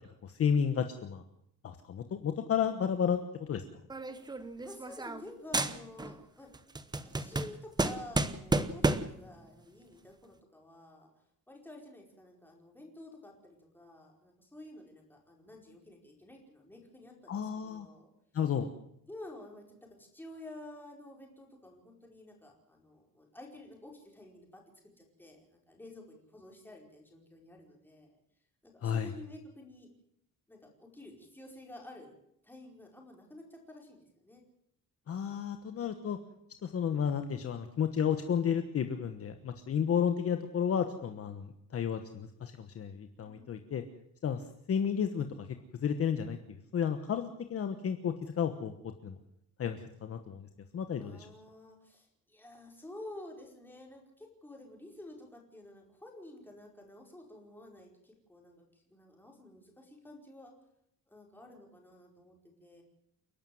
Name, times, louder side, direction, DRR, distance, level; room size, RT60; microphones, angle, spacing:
voice 1, 0.2-1.2 1.6-3.6 17.3-17.9 18.3-18.7 28.8-29.1 35.1-36.2 36.6-43.8 44.2-45.5 45.8-46.4 46.7-48.7 49.0-49.2 49.6-50.5 50.7-51.3, left 7 dB, 45° left, 7 dB, 1.3 m, -32 dB
sound 1, 3.9-5.3 5.5-6.2 6.5-9.2, right 2 dB, 10° right, 0.9 m, -32 dB
voice 2, 4.6-6.5 7.1-11.1 11.5-18.1 19.1-24.6 25.0-28.2 28.6-29.9 30.5-32.2 32.4-34.4 43.2-43.5 51.0-60.5 61.1-62.8, left 1 dB, 5° left, 0 dB, 4.8 m, -51 dB
29.5 x 12.0 x 7.9 m, 0.76 s
cardioid pair, 180°, 33 cm